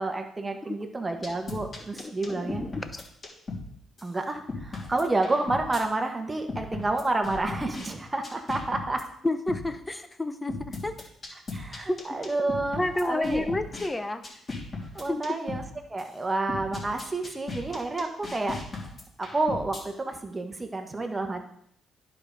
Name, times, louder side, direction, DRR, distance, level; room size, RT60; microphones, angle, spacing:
voice 1, 0.0-2.6 4.0-9.0 11.5-13.5 14.9-15.6 15.9-18.6 19.2-21.4, right 2 dB, 20° right, 4 dB, 1.4 m, -29 dB
sound 1, 1.2-3.7 4.0-4.1 4.5-5.8 6.5-7.9 8.2-9.0 9.5-9.7 10.5-13.9 14.2-15.7 16.0-16.1 16.5-19.8, left 3 dB, 35° left, 3.1 m, -36 dB
voice 2, 2.0-3.0 9.2-10.9 11.9-12.2 12.8-14.2 15.1-15.4, left 2 dB, 15° left, 9 dB, 0.8 m, -30 dB
10.5 x 4.9 x 5.2 m, 0.70 s
cardioid pair, 90°, 0 cm